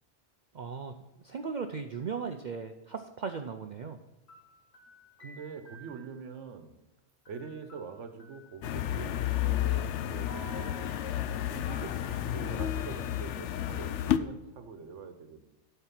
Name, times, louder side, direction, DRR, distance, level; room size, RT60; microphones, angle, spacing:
voice 1, 0.5-4.0, right 5 dB, 50° right, 6 dB, 0.6 m, -37 dB
sound 1, 4.3-6.3 7.2-8.8 10.3-12.8, right 3 dB, 65° left, 1.9 m, -54 dB
voice 2, 5.2-6.8 7.3-10.7 11.5-15.5, right 5 dB, 90° right, 9 dB, 1.3 m, -44 dB
sound 2, 8.6-14.2, left 11 dB, 80° left, 0.9 m, -31 dB
11.5 x 4.6 x 5.9 m, 1.1 s
omnidirectional pair, 1.2 m